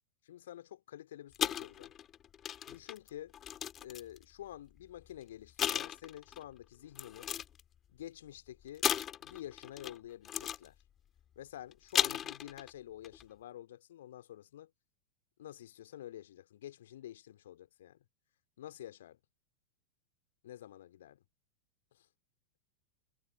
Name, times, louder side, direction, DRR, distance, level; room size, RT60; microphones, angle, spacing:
voice 1, 0.2-1.9 2.7-3.3 3.8-7.3 7.9-8.9 9.2-10.7 11.4-14.7 15.4-18.0 18.6-19.2 20.4-21.2 21.9-22.1, left 12 dB, 60° left, 2.6 m, -49 dB
sound 1, 1.3-4.2 5.0-5.2 5.6-6.4 7.0-7.6 8.8-10.0 10.2-10.7 11.7-12.7 13.0-13.2, left 10 dB, 25° left, 2.7 m, -35 dB
figure-of-eight pair, 90°, 0 cm